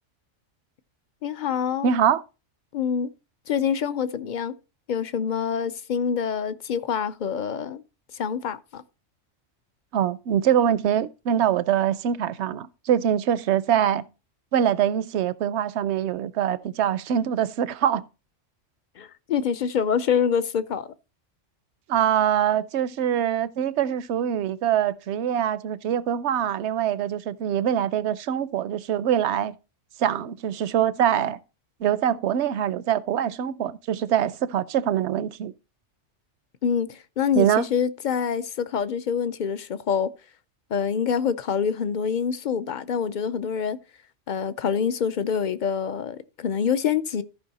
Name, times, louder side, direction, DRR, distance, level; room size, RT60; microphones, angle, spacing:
voice 1, 1.2-1.9 2.7-3.1 3.5-4.5 4.9-7.8 8.1-8.8 19.0-20.9 36.6-40.1 40.7-43.8 44.3-47.2, left 7 dB, 50° left, 0.6 m, -26 dB
voice 2, 1.8-2.2 9.9-14.1 14.5-18.0 21.9-29.5 30.0-31.4 31.8-35.5 37.4-37.7, right 9 dB, 70° right, 0.9 m, -24 dB
14.0 x 5.4 x 4.1 m
omnidirectional pair, 1.3 m